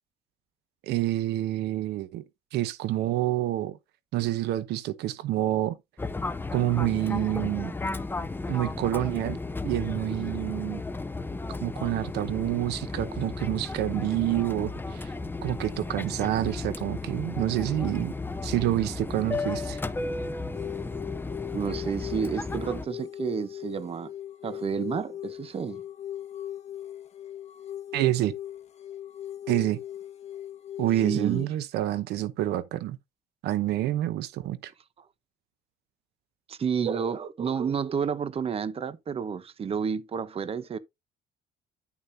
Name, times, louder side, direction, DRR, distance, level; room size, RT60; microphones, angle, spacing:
voice 1, 0.8-2.2 2.5-3.8 4.1-5.8 6.5-7.7 8.5-9.4 9.6-10.8 11.5-15.1 15.4-18.1 18.4-19.8 27.9-28.3 29.5-29.8 30.8-33.0 33.4-34.7, right 14 dB, 80° right, 0.9 m, -28 dB
Fixed-wing aircraft airplane, 6.0-22.9, left 3 dB, 10° left, 0.7 m, -34 dB
sound 1, 20.5-31.4, left 11 dB, 40° left, 1.6 m, -39 dB
voice 2, 21.5-24.1 24.4-25.8 31.0-31.5 35.0-35.1 36.5-40.8, right 6 dB, 35° right, 0.9 m, -30 dB
11.0 x 7.0 x 2.8 m
cardioid pair, 110°, 17 cm